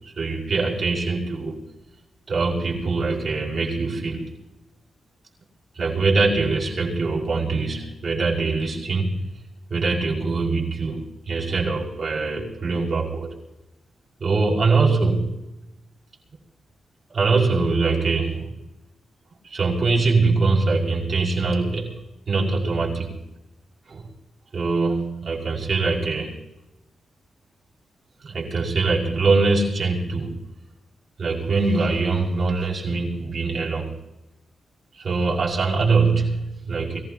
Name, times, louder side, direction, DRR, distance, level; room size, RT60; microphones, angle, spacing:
voice 1, 0.0-1.6 2.3-4.3 5.7-9.3 9.7-13.4 14.2-15.4 17.1-18.6 19.4-22.0 22.3-23.2 23.9-24.1 24.5-26.4 28.2-30.5 31.2-34.0 34.9-37.0, right 3 dB, 55° right, -4 dB, 5.9 m, -23 dB
25.0 x 16.0 x 3.0 m, 0.95 s
cardioid pair, 85°, 0 cm